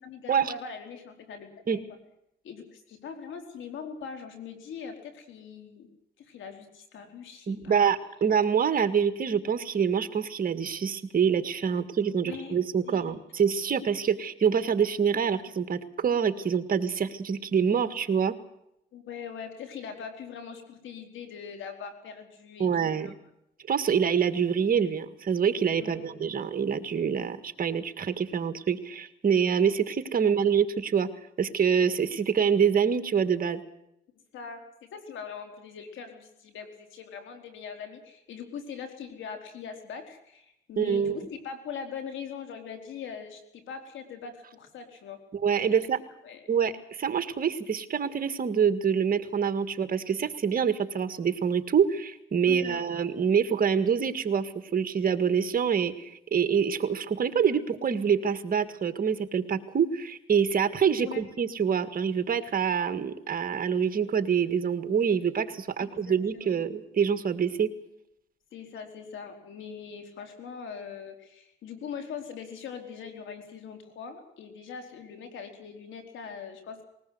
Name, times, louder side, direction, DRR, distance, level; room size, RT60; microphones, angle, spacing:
voice 1, 0.0-1.8 2.4-5.9 6.2-7.9 12.2-12.5 12.9-13.2 18.9-23.1 25.8-26.1 30.2-30.5 34.3-34.6 34.9-45.2 45.7-45.8 46.2-46.4 52.5-52.8 61.0-61.2 65.8-66.6 68.5-76.8, left 6 dB, 75° left, 5 dB, 4.5 m, -41 dB
voice 2, 7.5-18.3 22.6-23.1 23.7-31.1 31.4-33.6 40.8-41.2 45.4-46.0 46.5-67.7, right 7 dB, 45° right, 11 dB, 1.8 m, -26 dB
20.5 x 19.5 x 7.9 m, 0.80 s
cardioid pair, 90°, 20 cm